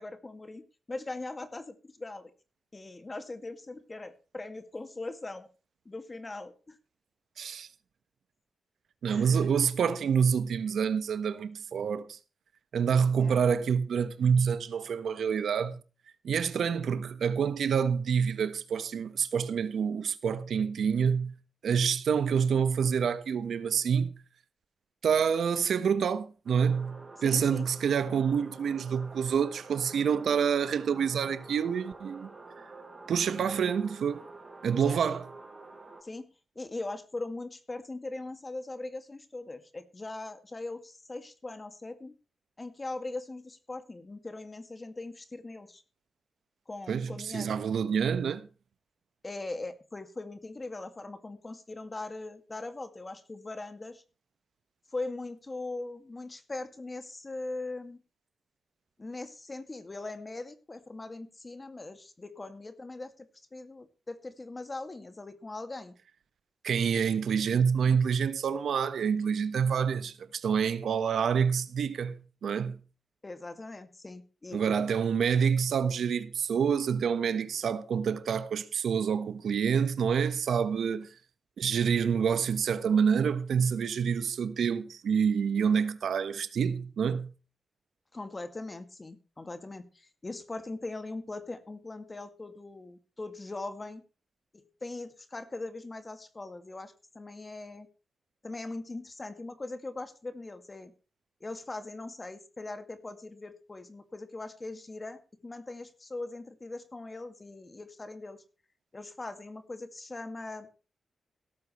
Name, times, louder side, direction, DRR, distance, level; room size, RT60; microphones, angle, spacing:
voice 1, 0.0-2.3 2.7-5.5 5.9-6.8 9.1-9.5 13.1-13.4 27.2-27.7 34.8-35.2 36.0-36.3 36.6-42.1 42.6-45.8 46.7-47.5 49.2-54.0 54.9-58.0 59.0-65.9 73.2-74.7 88.1-94.0 94.5-97.9 98.4-100.9 101.4-108.4 108.9-110.7, left 2 dB, 25° left, 2.2 m, -40 dB
voice 2, 7.4-7.7 9.0-12.2 12.7-15.8 16.2-21.3 21.6-24.2 25.0-32.3 33.1-34.2 34.6-35.3 46.9-48.4 66.6-72.8 74.5-81.1 81.6-87.3, right 7 dB, 80° right, 1.3 m, -27 dB
sound 1, 26.5-36.0, right 3 dB, 25° right, 5.2 m, -48 dB
17.0 x 14.0 x 3.2 m
wide cardioid pair, 115°, 0 cm